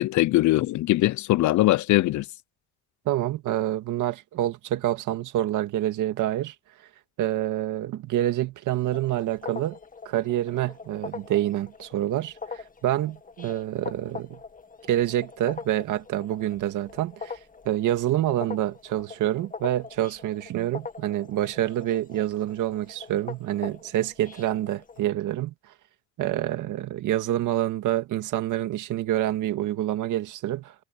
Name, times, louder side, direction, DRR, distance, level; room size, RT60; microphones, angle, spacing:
voice 1, 0.0-2.3, left 17 dB, 70° left, 0.5 m, -21 dB
voice 2, 3.1-6.6 7.2-9.8 10.1-14.4 14.9-17.4 17.7-25.5 26.2-30.7, right 13 dB, 85° right, 2.1 m, -27 dB
sound 1, 8.7-25.0, left 4 dB, 25° left, 1.9 m, -42 dB
cardioid pair, 90°, 30 cm